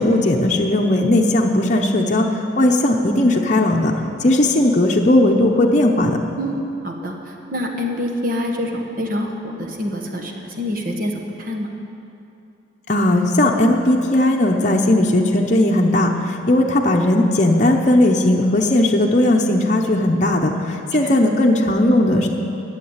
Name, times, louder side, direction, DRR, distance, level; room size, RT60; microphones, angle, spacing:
voice 1, 0.0-2.3 2.6-3.9 4.2-6.2 12.9-22.3, left 1 dB, 40° left, 0 dB, 0.8 m, -17 dB
voice 2, 6.4-11.7 20.8-21.2, left 1 dB, 50° right, 2 dB, 1.4 m, -26 dB
12.0 x 7.3 x 9.6 m, 2.7 s
head